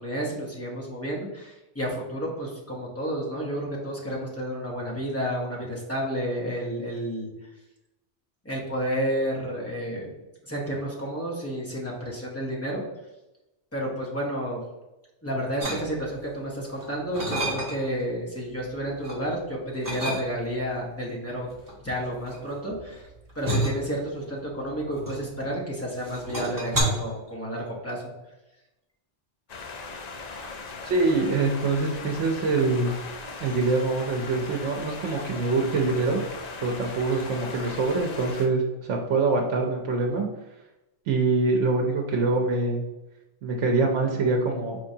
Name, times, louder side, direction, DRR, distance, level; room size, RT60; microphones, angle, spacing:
voice 1, 0.0-7.3 8.4-10.1 10.4-12.8 13.7-14.6 15.2-21.5 21.8-23.1 23.3-28.1, equal, 15° left, -3 dB, 0.9 m, -31 dB
sound 1, 15.6-16.3 16.7-18.0 18.4-19.2 19.8-20.7 21.5-25.6 25.9-26.8, right 1 dB, 20° right, 1.0 m, -31 dB
sound 2, 29.5-38.5, left 3 dB, 50° left, 0.5 m, -39 dB
voice 2, 30.8-32.9 33.4-36.2 36.6-40.3 41.1-42.8 43.4-44.8, right 3 dB, 80° right, 1 dB, 0.9 m, -24 dB
4.5 x 3.2 x 2.7 m, 0.98 s
omnidirectional pair, 1.2 m